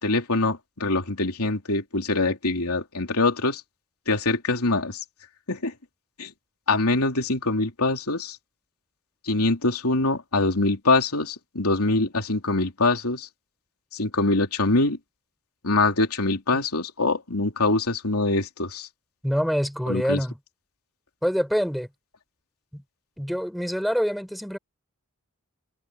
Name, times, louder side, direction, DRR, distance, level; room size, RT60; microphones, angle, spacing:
voice 1, 0.0-3.6 4.1-5.0 5.5-5.7 6.2-6.3 6.7-8.4 9.2-13.3 13.9-15.0 15.6-18.9 19.9-20.2, left 2 dB, 80° left, 3.5 m, -24 dB
voice 2, 19.2-20.4 21.2-21.9 22.7-22.8 23.2-24.6, equal, ahead, 4.2 m, -25 dB
head